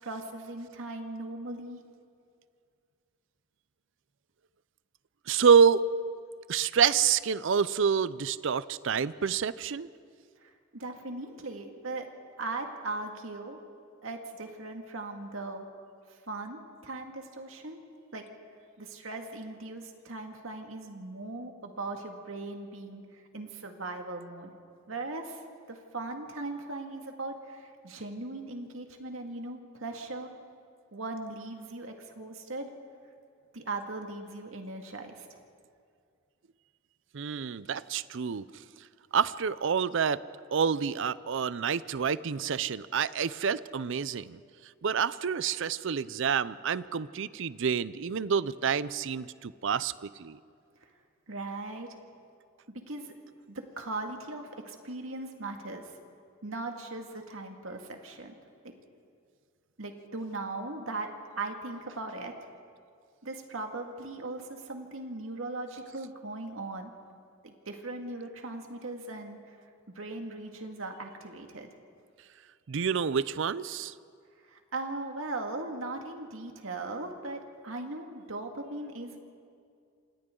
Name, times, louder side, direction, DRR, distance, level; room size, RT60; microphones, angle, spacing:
voice 1, 0.0-1.8 10.4-12.0 12.4-13.6 14.0-15.7 16.1-17.8 18.1-18.3 18.8-24.5 24.9-25.4 25.7-30.3 30.9-32.7 33.5-35.4 51.3-52.0 52.7-53.1 53.5-55.9 56.4-58.3 59.8-61.1 61.4-62.3 63.2-66.9 67.4-69.6 69.9-71.7 74.4-79.2, right 2 dB, 80° right, 3 dB, 2.1 m, -39 dB
voice 2, 5.3-5.8 6.5-9.9 37.1-38.4 39.1-40.2 40.5-44.4 44.8-50.4 72.7-73.9, right 6 dB, 65° right, 17 dB, 0.5 m, -27 dB
27.5 x 26.5 x 3.9 m, 2.3 s
head